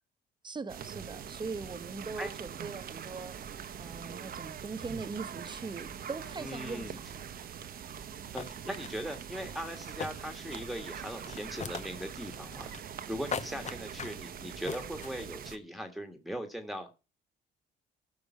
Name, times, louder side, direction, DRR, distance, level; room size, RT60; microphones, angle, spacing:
voice 1, 0.4-3.4 3.8-7.2, right 4 dB, 25° right, 1.1 m, -41 dB
sound 1, 0.7-15.6, right 8 dB, 55° right, 1.0 m, -43 dB
voice 2, 6.4-7.0 8.3-12.7 13.1-16.9, equal, ahead, 1.6 m, -39 dB
sound 2, 8.0-8.1 8.4-9.0 9.7-10.8 11.1-12.1 12.3-13.0 13.3-14.2 14.7-15.1, left 6 dB, 40° left, 0.8 m, -39 dB
15.0 x 5.4 x 5.6 m
supercardioid pair, 80°, 18 cm